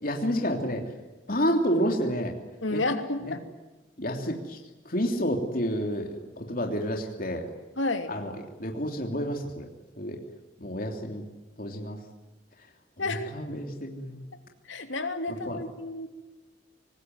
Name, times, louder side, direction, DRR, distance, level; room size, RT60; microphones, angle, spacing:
voice 1, 0.0-0.8 1.3-2.3 2.7-2.8 3.2-3.4 4.0-4.6 4.8-7.5 8.1-8.3 8.6-9.7 10.0-10.2 10.6-11.2 11.6-12.0 13.0-14.2 15.4-15.6, equal, 45° left, 2 dB, 3.2 m, -29 dB
voice 2, 2.6-3.4 7.8-8.1 13.0-13.3 14.7-16.1, left 2 dB, 80° left, 6 dB, 3.0 m, -30 dB
25.5 x 20.0 x 9.5 m, 1.1 s
head